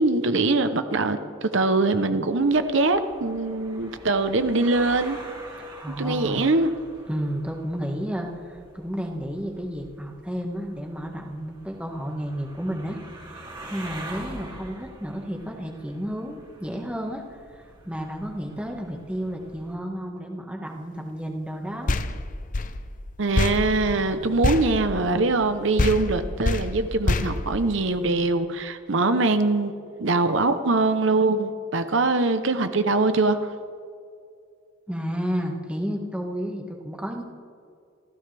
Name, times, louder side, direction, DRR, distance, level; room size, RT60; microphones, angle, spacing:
voice 1, 0.0-5.2 6.0-6.7 23.2-29.7 30.0-33.5, right 3 dB, 65° right, 9 dB, 0.8 m, -22 dB
sound 1, 2.3-19.8, right 1 dB, 25° right, 2.9 m, -45 dB
voice 2, 5.6-6.5 7.1-13.0 13.3-13.4 13.7-17.2 17.6-22.0 34.9-37.2, equal, 5° right, 1 dB, 1.6 m, -32 dB
sound 2, 21.9-25.5 25.8-28.3, left 2 dB, 40° left, 0.7 m, -27 dB
28.5 x 14.5 x 3.4 m, 2.4 s
head